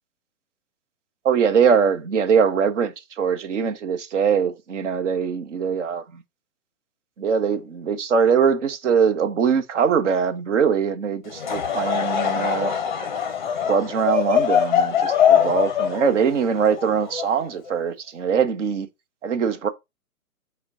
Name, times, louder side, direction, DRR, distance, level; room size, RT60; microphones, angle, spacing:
voice 1, 1.2-6.2 7.2-12.7 13.6-18.9 19.2-19.7, right 6 dB, 50° right, 0.9 m, -22 dB
Laughter / Crowd, 11.3-17.7, left 8 dB, 30° left, 0.6 m, -22 dB
4.9 x 2.2 x 4.6 m
hypercardioid pair, 165°, 45 cm